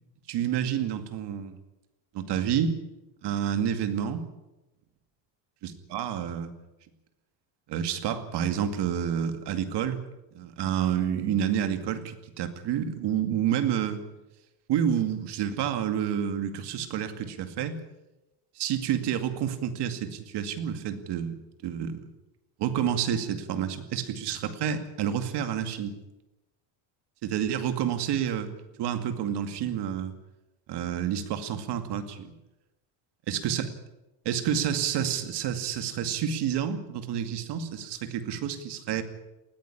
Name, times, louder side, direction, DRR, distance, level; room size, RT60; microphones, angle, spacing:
voice 1, 0.3-1.6 2.1-2.8 3.2-4.2 5.6-6.5 7.7-10.0 10.3-14.0 14.7-17.8 18.6-21.4 21.6-22.0 22.6-26.0 27.2-28.5 28.8-30.1 30.7-32.3 33.3-33.7 34.2-39.0, right 9 dB, 55° right, 8 dB, 2.4 m, -29 dB
20.0 x 15.0 x 9.9 m, 0.99 s
cardioid pair, 160°, 48 cm